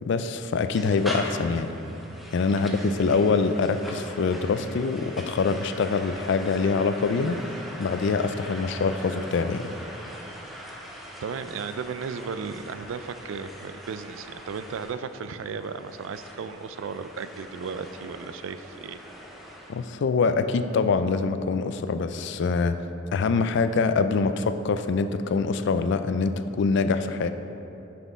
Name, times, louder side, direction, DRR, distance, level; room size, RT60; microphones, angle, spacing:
voice 1, 0.0-1.7 2.3-7.4 7.8-9.7 19.7-22.8 23.1-27.3, left 4 dB, 60° left, 10 dB, 0.3 m, -24 dB
sound 1, 0.7-19.9, equal, ahead, 0.7 m, -42 dB
voice 2, 11.2-19.0, right 5 dB, 70° right, 12 dB, 0.3 m, -35 dB
9.3 x 6.0 x 3.6 m, 3.0 s
head